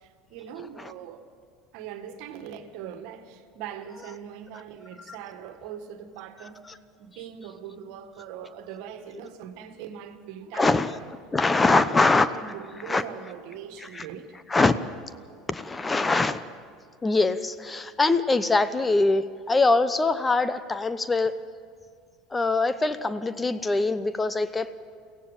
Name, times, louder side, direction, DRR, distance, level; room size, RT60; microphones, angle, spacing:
voice 1, 0.0-1.2 1.7-6.6 7.0-11.1 11.6-12.1 12.3-14.3, right 9 dB, 65° right, 8 dB, 1.7 m, -41 dB
voice 2, 10.5-11.0 11.3-12.3 12.9-13.0 13.8-14.1 14.5-14.7 15.5-16.4 17.0-21.3 22.3-24.7, left 3 dB, 20° left, 13 dB, 0.8 m, -23 dB
23.0 x 16.5 x 7.4 m, 2.1 s
hypercardioid pair, 80°, 0 cm